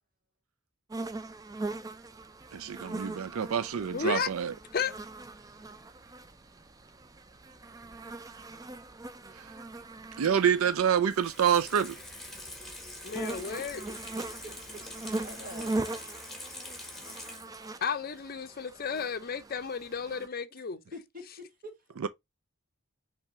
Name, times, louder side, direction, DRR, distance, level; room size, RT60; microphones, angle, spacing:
sound 1, 0.9-20.3, right 2 dB, 15° right, 0.3 m, -41 dB
voice 1, 2.5-4.5 10.2-12.0 22.0-22.1, right 8 dB, 80° right, 0.4 m, -27 dB
voice 2, 3.9-4.3 4.7-5.0 13.0-13.8 17.8-20.8, left 6 dB, 45° left, 0.5 m, -33 dB
Water tap faucet / Sink (filling or washing), 11.0-17.8 18.1-18.2, left 1 dB, ahead, 1.5 m, -44 dB
voice 3, 12.8-16.0 17.0-17.9 18.6-18.8 19.6-19.8 20.9-21.9, equal, 40° right, 1.8 m, -49 dB
5.5 x 3.4 x 2.7 m
head